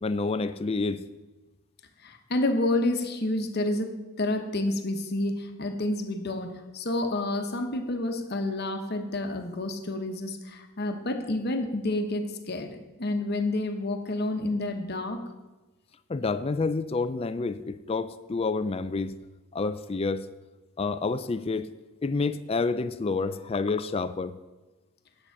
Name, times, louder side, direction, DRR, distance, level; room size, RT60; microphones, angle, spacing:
voice 1, 0.0-1.0 16.1-19.2 19.5-20.3 20.8-21.7 22.0-24.4, left 3 dB, 30° left, 12 dB, 0.4 m, -28 dB
voice 2, 2.0-15.2, left 2 dB, 50° left, 6 dB, 1.1 m, -29 dB
9.9 x 7.8 x 5.8 m, 1.1 s
head